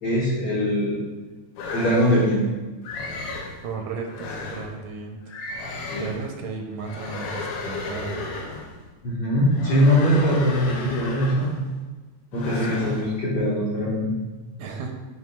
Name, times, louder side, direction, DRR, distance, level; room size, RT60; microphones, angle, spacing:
voice 1, 0.0-1.0 1.7-2.4 5.9-6.1 9.0-11.5 12.3-14.1, equal, 60° left, -6 dB, 1.1 m, -22 dB
sound 1, 1.6-2.4 2.8-3.6 4.1-4.7 5.3-6.3 6.8-8.7 9.5-11.7 12.3-13.1, left 3 dB, 80° left, 2.3 m, -33 dB
voice 2, 3.6-5.2 6.0-8.3 12.5-13.0 14.6-14.9, right 4 dB, 85° right, 2 dB, 2.0 m, -34 dB
9.5 x 4.5 x 2.2 m, 1.3 s
omnidirectional pair, 3.3 m